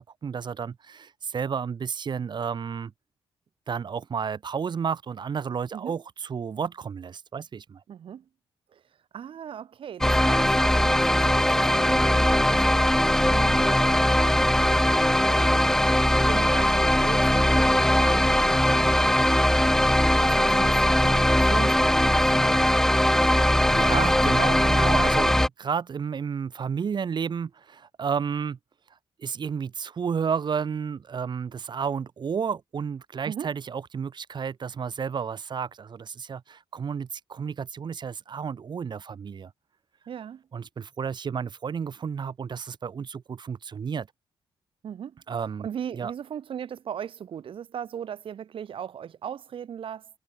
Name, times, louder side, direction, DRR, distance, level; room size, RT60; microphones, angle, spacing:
voice 1, 0.0-2.9 3.7-7.8 23.3-28.6 29.2-39.5 40.5-44.1 45.3-45.7 45.9-46.1, right 6 dB, 55° right, 4.2 m, -31 dB
voice 2, 7.9-8.2 8.7-8.8 9.1-15.7 16.2-19.3 20.2-22.6 33.3-33.5 40.1-40.4 44.8-45.1 45.6-50.1, right 9 dB, 70° right, 1.9 m, -38 dB
sound 1, 10.0-25.5, left 1 dB, 5° left, 1.2 m, -20 dB
cardioid pair, 100°, 9 cm